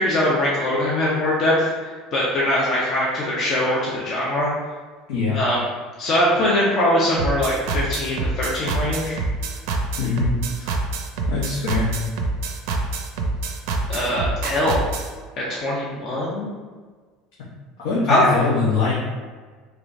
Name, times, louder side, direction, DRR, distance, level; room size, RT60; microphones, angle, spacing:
voice 1, 0.0-4.5 5.3-5.6 6.0-9.2 13.9-14.9 15.4-16.5 18.1-18.3, left 1 dB, 40° left, -6 dB, 0.6 m, -22 dB
sound 1, 7.2-15.1, right 3 dB, 80° right, 0.5 m, -25 dB
voice 2, 10.0-10.3 10.6-10.7 11.3-11.9 17.8-18.9, left 4 dB, 90° left, -6 dB, 0.8 m, -22 dB
3.4 x 3.3 x 2.6 m, 1.5 s
cardioid pair, 150°, 0 cm